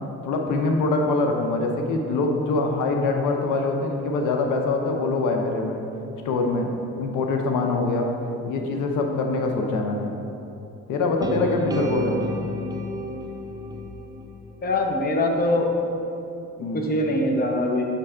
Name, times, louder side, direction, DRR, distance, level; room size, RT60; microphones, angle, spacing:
voice 1, 0.2-5.8 6.2-8.1 8.5-10.1 10.9-12.2 16.6-16.9, left 3 dB, 85° left, 2 dB, 0.7 m, -24 dB
sound 1, 11.2-15.3, right 1 dB, 15° right, 0.4 m, -32 dB
voice 2, 14.6-15.7 16.7-17.9, left 1 dB, 30° left, 2 dB, 0.8 m, -23 dB
6.7 x 3.3 x 4.9 m, 2.8 s
cardioid pair, 90°, 30 cm